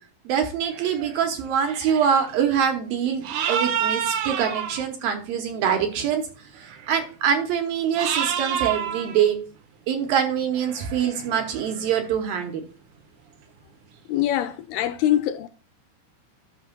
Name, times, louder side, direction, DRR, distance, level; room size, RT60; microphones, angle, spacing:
voice 1, 0.3-6.2 6.9-9.4 9.9-12.6, right 8 dB, 70° right, 2.4 m, -24 dB
sound 1, 0.6-1.2 1.5-2.3 3.2-4.8 6.6-7.1 8.0-9.3 10.4-12.1, right 8 dB, 90° right, 1.7 m, -29 dB
voice 2, 14.1-15.5, left 12 dB, 80° left, 2.3 m, -23 dB
13.0 x 6.1 x 2.2 m
omnidirectional pair, 4.8 m